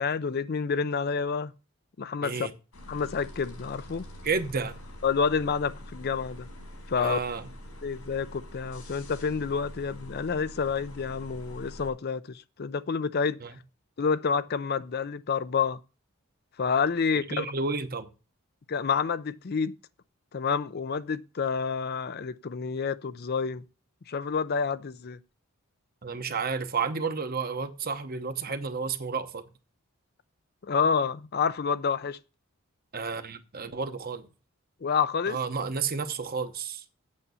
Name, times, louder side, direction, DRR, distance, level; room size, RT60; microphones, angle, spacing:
voice 1, 0.0-1.5 2.0-2.5 2.9-4.1 5.0-6.5 6.9-7.2 7.8-13.4 14.0-15.8 16.6-17.5 18.7-19.7 20.3-23.6 24.1-25.2 30.6-32.2 34.8-35.4, left 5 dB, 45° left, 0.5 m, -28 dB
voice 2, 2.2-2.5 4.2-4.8 7.0-7.4 13.4-13.5 17.3-18.1 26.0-29.4 32.9-34.3 35.3-36.8, right 5 dB, 45° right, 0.9 m, -31 dB
sound 1, 2.7-11.9, left 1 dB, 80° left, 4.1 m, -45 dB
8.5 x 6.8 x 6.8 m
head